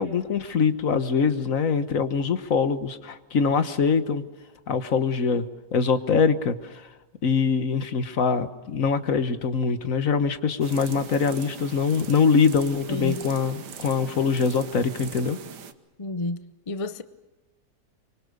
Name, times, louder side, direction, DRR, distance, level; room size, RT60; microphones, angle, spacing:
voice 1, 0.0-4.2 4.7-5.5 5.7-6.8 7.2-15.4, left 5 dB, 55° left, 1.5 m, -23 dB
sound 1, 10.6-15.7, right 8 dB, 75° right, 1.8 m, -41 dB
voice 2, 12.9-13.2 16.0-17.0, left 2 dB, 35° left, 0.5 m, -31 dB
24.5 x 24.5 x 6.7 m
omnidirectional pair, 1.8 m